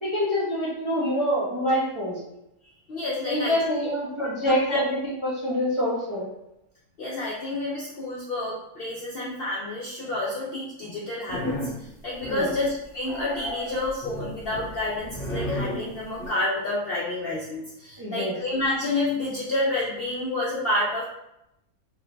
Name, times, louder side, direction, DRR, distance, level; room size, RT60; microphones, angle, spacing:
voice 1, 0.0-2.2 3.2-6.2 12.3-12.5 18.0-18.3, equal, 30° right, -9 dB, 0.6 m, -26 dB
voice 2, 2.9-3.5 4.4-4.8 7.0-21.1, left 2 dB, 65° left, -5 dB, 0.6 m, -29 dB
sound 1, 11.3-11.8 12.2-12.7 13.0-16.3, equal, 35° left, 0.8 m, -33 dB
2.5 x 2.1 x 3.8 m, 0.84 s
omnidirectional pair, 1.5 m